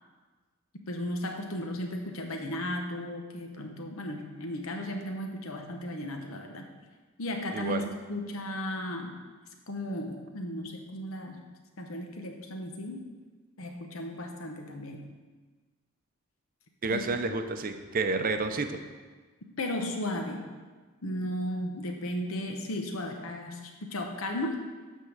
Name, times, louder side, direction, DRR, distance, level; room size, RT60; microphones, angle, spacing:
voice 1, 0.9-6.7 7.2-9.1 9.7-11.4 11.8-13.1 13.6-15.0 16.9-17.0 19.6-20.5 21.0-24.6, left 1 dB, 75° left, 3 dB, 1.0 m, -35 dB
voice 2, 7.5-7.9 16.8-18.8, right 3 dB, 45° right, 7 dB, 0.6 m, -30 dB
10.5 x 3.7 x 6.5 m, 1.4 s
head